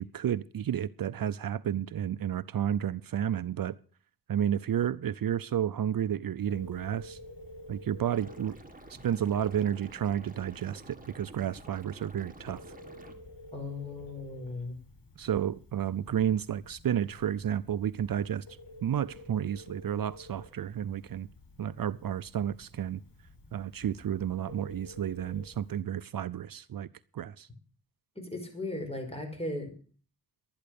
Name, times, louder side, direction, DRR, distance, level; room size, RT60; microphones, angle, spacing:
voice 1, 0.0-3.7 4.3-7.2 7.7-8.5 9.0-12.6 15.2-18.4 18.8-21.3 21.6-23.0 23.5-26.9 27.1-27.5, right 9 dB, 65° right, 0.5 m, -31 dB
Telephone, 6.4-25.8, left 1 dB, 65° left, 7.8 m, -51 dB
Liquid, 8.1-13.1, right 2 dB, 20° right, 2.3 m, -51 dB
voice 2, 13.5-14.8 28.2-29.7, left 2 dB, 15° left, 5.5 m, -37 dB
12.0 x 10.5 x 6.7 m
cardioid pair, 65°, 37 cm